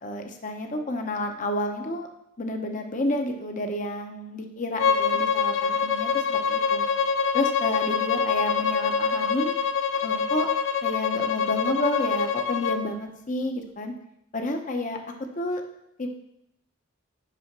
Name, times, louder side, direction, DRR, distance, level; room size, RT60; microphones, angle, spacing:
voice 1, 0.0-2.1 2.4-6.8 7.3-9.5 10.0-10.5 10.8-13.9 14.3-15.0 15.4-15.6 16.0-16.1, left 1 dB, 40° left, 4 dB, 0.8 m, -30 dB
Bowed string instrument, 4.8-12.8, left 6 dB, 70° left, 0.6 m, -25 dB
5.8 x 4.9 x 5.9 m, 0.79 s
head